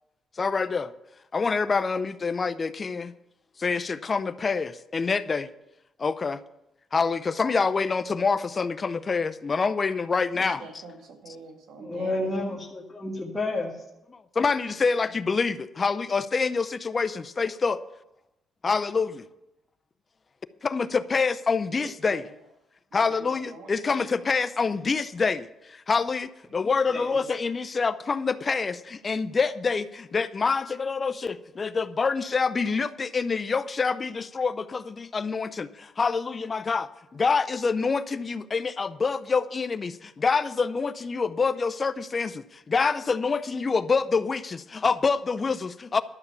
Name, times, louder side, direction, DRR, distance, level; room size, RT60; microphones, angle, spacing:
voice 1, 0.4-0.9 1.3-3.1 3.6-5.5 6.0-6.4 6.9-10.6 14.1-17.8 18.6-19.3 20.6-22.2 22.9-46.0, left 4 dB, 35° left, 14 dB, 0.6 m, -26 dB
voice 2, 10.3-12.3 21.7-22.4 22.9-24.1, right 4 dB, 75° right, 4 dB, 1.8 m, -44 dB
voice 3, 11.8-13.7 26.6-27.1, left 2 dB, 10° left, -3 dB, 2.0 m, -31 dB
12.0 x 7.1 x 6.8 m, 0.91 s
cardioid pair, 90°, 0 cm